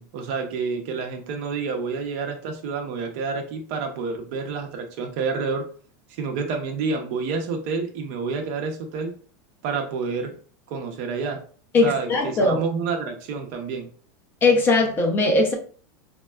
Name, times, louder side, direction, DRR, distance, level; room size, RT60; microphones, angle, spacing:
voice 1, 0.0-5.6 6.1-9.1 9.6-10.3 10.7-11.4 11.8-13.9, right 5 dB, 45° right, 4 dB, 0.6 m, -29 dB
voice 2, 11.7-12.6 14.4-15.5, left 2 dB, 20° left, 3 dB, 0.4 m, -19 dB
4.2 x 2.1 x 2.2 m, 0.43 s
supercardioid pair, 165°, 10 cm